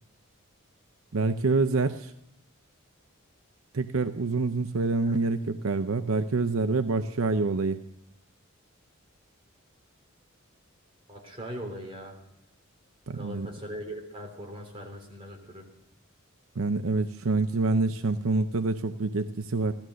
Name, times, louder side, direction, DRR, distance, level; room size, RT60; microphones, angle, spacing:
voice 1, 1.1-2.1 3.7-7.8 13.1-13.5 16.6-19.7, right 3 dB, 75° right, 9 dB, 0.7 m, -26 dB
voice 2, 11.1-12.2 13.1-15.7, equal, 25° right, 1 dB, 3.4 m, -40 dB
16.0 x 13.5 x 6.3 m, 0.79 s
head